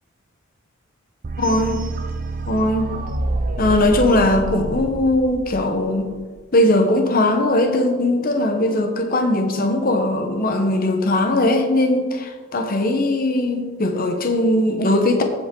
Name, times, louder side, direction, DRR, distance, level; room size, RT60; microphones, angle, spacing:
sound 1, 1.2-6.1, right 2 dB, 40° right, 0.5 m, -27 dB
voice 1, 1.4-1.8 2.5-3.0 3.6-6.1 6.5-15.2, left 1 dB, 45° left, 4 dB, 1.0 m, -19 dB
15.0 x 5.2 x 3.8 m, 1.4 s
head